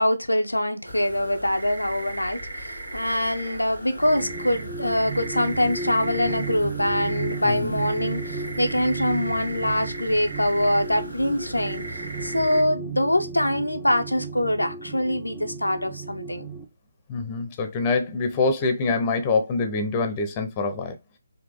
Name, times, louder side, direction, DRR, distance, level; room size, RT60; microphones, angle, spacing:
voice 1, 0.0-16.5, left 1 dB, 80° left, 0.7 m, -24 dB
sound 1, 0.8-12.6, right 1 dB, 80° right, 2.0 m, -37 dB
sound 2, 3.8-16.6, right 4 dB, 10° right, 0.7 m, -34 dB
voice 2, 7.4-7.7 17.1-21.0, left 3 dB, 20° left, 0.9 m, -25 dB
4.8 x 2.9 x 3.6 m
figure-of-eight pair, 145°, 0 cm